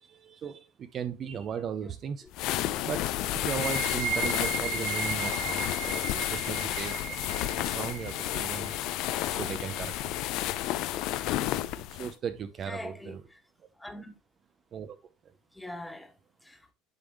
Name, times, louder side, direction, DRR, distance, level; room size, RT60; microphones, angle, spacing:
voice 1, 0.0-2.3 2.8-3.1 3.3-7.1 7.4-8.7 9.3-10.3 11.2-13.2 14.7-15.0 15.2-15.3, right 7 dB, 45° right, 0.7 m, -37 dB
sound 1, 2.3-12.1, left 14 dB, 60° left, 0.5 m, -31 dB
sound 2, 3.3-10.8, right 6 dB, 80° right, 2.2 m, -37 dB
voice 2, 12.7-13.4 13.7-14.2 15.5-16.7, left 1 dB, 5° left, 1.5 m, -44 dB
10.5 x 3.5 x 3.5 m
hypercardioid pair, 80°, 0 cm